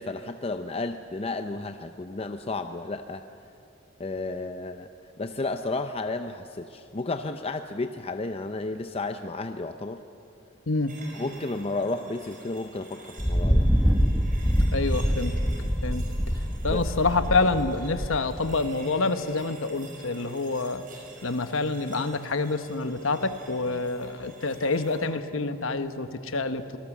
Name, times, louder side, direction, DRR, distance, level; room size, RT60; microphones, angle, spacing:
voice 1, 0.0-3.2 4.0-4.9 5.2-10.0 11.1-13.7 15.6-15.7 16.7-16.8, left 3 dB, 30° left, 8 dB, 0.6 m, -32 dB
sound 1, 10.9-25.1, right 2 dB, 40° right, 5.8 m, -49 dB
Thunder, 13.2-18.7, equal, ahead, 1.1 m, -25 dB
voice 2, 14.7-15.3 15.8-16.1 16.6-20.8 21.2-26.8, left 3 dB, 75° left, 10 dB, 1.2 m, -27 dB
26.0 x 19.0 x 7.3 m, 2.6 s
head